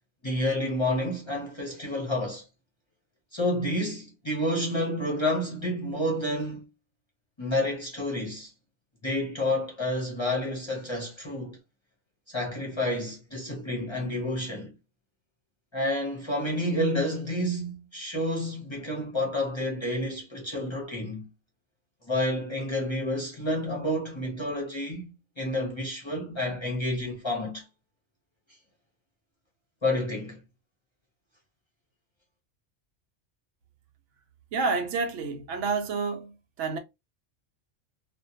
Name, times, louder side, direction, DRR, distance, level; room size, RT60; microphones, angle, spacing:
voice 1, 0.2-2.4 3.3-6.7 7.4-8.5 9.0-11.6 12.3-14.7 15.7-21.3 22.0-27.6 29.8-30.4, left 1 dB, 30° left, 0.6 m, -29 dB
voice 2, 34.5-36.3 36.6-36.8, right 4 dB, 90° right, 0.9 m, -28 dB
2.5 x 2.1 x 2.7 m
omnidirectional pair, 1.2 m